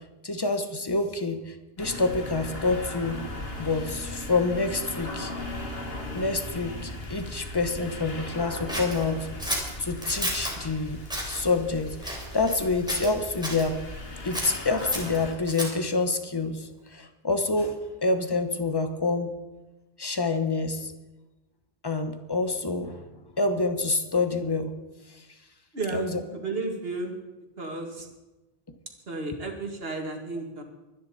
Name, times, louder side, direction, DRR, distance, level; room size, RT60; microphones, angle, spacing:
voice 1, 0.2-3.2 3.6-5.3 6.1-9.3 9.8-13.8 14.2-19.4 20.0-20.9 21.8-23.0 23.4-24.7 25.1-25.2 25.9-26.2, left 3 dB, 20° left, 8 dB, 1.1 m, -27 dB
sound 1, 1.8-15.3, left 1 dB, 60° left, 2.0 m, -38 dB
Scissors, 8.7-10.6 11.0-11.4 12.0-12.6 12.9-13.7 14.3-15.9, equal, 5° right, 3.7 m, -33 dB
voice 2, 25.7-26.1 26.3-27.2 27.6-28.1 29.1-30.6, right 3 dB, 60° right, 3 dB, 2.2 m, -33 dB
23.5 x 10.5 x 4.3 m, 1.1 s
omnidirectional pair, 1.1 m